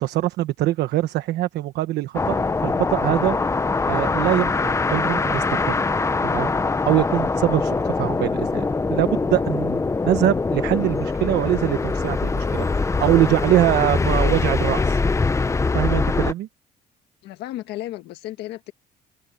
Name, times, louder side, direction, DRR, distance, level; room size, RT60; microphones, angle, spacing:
voice 1, 0.0-3.4 3.9-5.8 6.2-6.5 6.9-15.0 15.7-16.5, right 15 dB, 80° right, 1.2 m, -23 dB
sound 1, 2.1-16.3, left 3 dB, 15° left, 0.8 m, -23 dB
voice 2, 17.2-18.7, left 15 dB, 85° left, 1.6 m, -33 dB
open air
cardioid pair, 110°, 17 cm